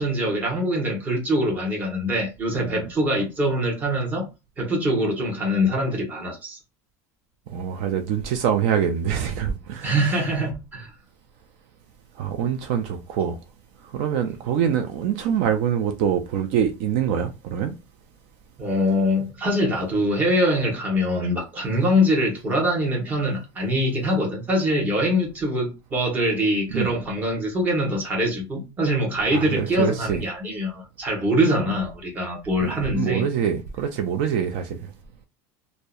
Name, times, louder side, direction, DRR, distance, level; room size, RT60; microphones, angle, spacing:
voice 1, 0.0-4.3 4.6-6.6 9.8-10.9 18.6-33.2, equal, 20° right, 0.9 m, -23 dB
voice 2, 7.5-10.2 12.2-13.4 13.8-17.8 26.7-26.9 29.3-30.2 32.6-34.9, right 8 dB, 65° right, 0.4 m, -25 dB
2.6 x 2.1 x 2.3 m
cardioid pair, 160°, 9 cm